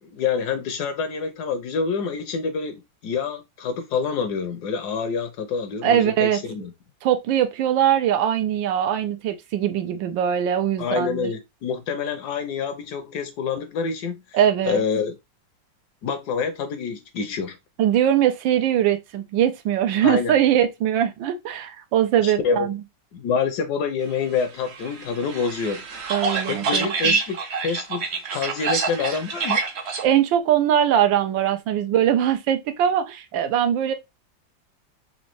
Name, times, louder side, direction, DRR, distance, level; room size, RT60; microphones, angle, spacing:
voice 1, 0.0-6.7 10.8-14.4 14.6-15.2 16.0-17.6 20.0-20.3 22.2-22.7 23.1-25.8 26.5-28.0 28.3-29.6, left 5 dB, 70° left, 1.0 m, -27 dB
voice 2, 5.8-6.4 7.0-11.3 14.3-14.8 17.8-22.8 26.1-27.2 30.0-33.9, right 10 dB, 85° right, 1.4 m, -21 dB
sound 1, 24.7-30.0, right 4 dB, 65° right, 0.6 m, -26 dB
4.2 x 2.7 x 2.9 m
omnidirectional pair, 2.1 m